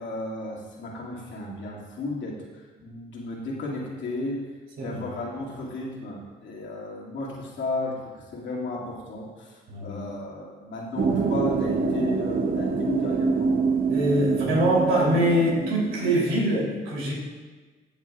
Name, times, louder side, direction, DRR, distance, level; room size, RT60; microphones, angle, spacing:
voice 1, 0.0-4.4 4.8-13.5, left 2 dB, 70° left, -4 dB, 2.3 m, -34 dB
voice 2, 9.7-10.1 13.9-17.1, right 1 dB, 90° right, -4 dB, 3.3 m, -23 dB
sound 1, 11.0-16.2, right 4 dB, 45° right, 0.8 m, -26 dB
16.0 x 7.3 x 2.4 m, 1.3 s
cardioid pair, 90°, 20 cm